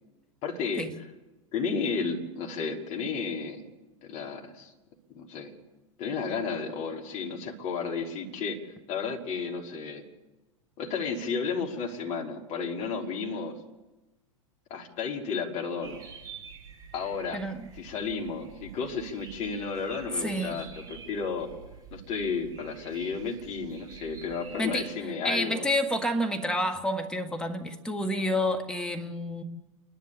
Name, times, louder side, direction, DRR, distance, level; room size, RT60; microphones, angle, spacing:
voice 1, 0.4-0.9 1.5-3.6 4.0-4.7 5.1-5.5 6.0-8.6 8.9-10.0 10.8-13.6 14.7-16.0 16.9-17.4 17.8-21.5 21.9-25.7, left 5 dB, 40° left, 3.4 m, -32 dB
sound 1, 15.8-24.9, right 6 dB, 20° right, 6.4 m, -48 dB
voice 2, 17.3-17.7 20.2-20.6 24.6-24.9 25.2-29.4, left 1 dB, 5° left, 1.7 m, -29 dB
29.0 x 11.0 x 8.6 m
figure-of-eight pair, 90°, 17 cm